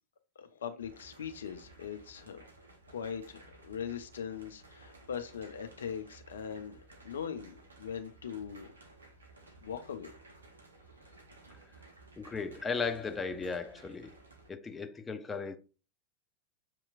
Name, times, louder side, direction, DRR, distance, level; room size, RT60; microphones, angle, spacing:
voice 1, 0.4-2.4 2.9-6.8 7.0-8.7 9.6-10.1, left 7 dB, 70° left, 0.5 m, -40 dB
sound 1, 0.8-14.5, right 2 dB, 80° right, 0.8 m, -56 dB
voice 2, 12.2-14.1 14.5-15.6, left 5 dB, 20° left, 0.5 m, -36 dB
6.7 x 2.9 x 2.4 m
figure-of-eight pair, 85°, 0 cm